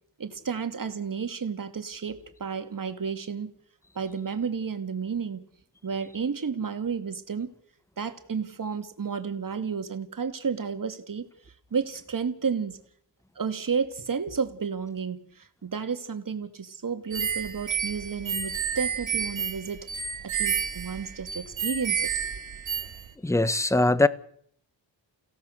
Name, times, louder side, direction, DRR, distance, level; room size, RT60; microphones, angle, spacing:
voice 1, 0.2-3.5 4.0-5.4 5.8-7.5 8.0-11.2 11.7-12.8 13.4-19.9 20.3-22.1, right 6 dB, 45° right, 2.5 m, -32 dB
sound 1, 17.1-23.1, right 7 dB, 80° right, 3.3 m, -30 dB
voice 2, 23.2-24.1, left 2 dB, 5° left, 1.1 m, -21 dB
29.5 x 16.5 x 6.6 m
cardioid pair, 85°, 45 cm